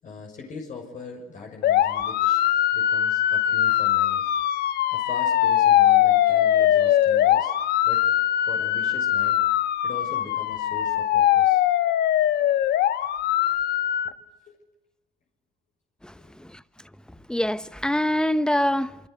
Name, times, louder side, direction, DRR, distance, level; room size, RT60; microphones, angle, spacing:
voice 1, 0.0-2.5 2.7-4.2 4.9-7.5 7.8-8.0 8.5-9.4 9.8-11.6 14.0-14.1 14.5-14.6 16.2-16.3, left 4 dB, 50° left, 6.3 m, -41 dB
sound 1, 1.6-14.1, left 11 dB, 75° left, 1.4 m, -21 dB
voice 2, 16.0-16.6 17.3-19.0, left 1 dB, 5° left, 1.1 m, -25 dB
28.0 x 25.0 x 8.1 m
cardioid pair, 110°, 17 cm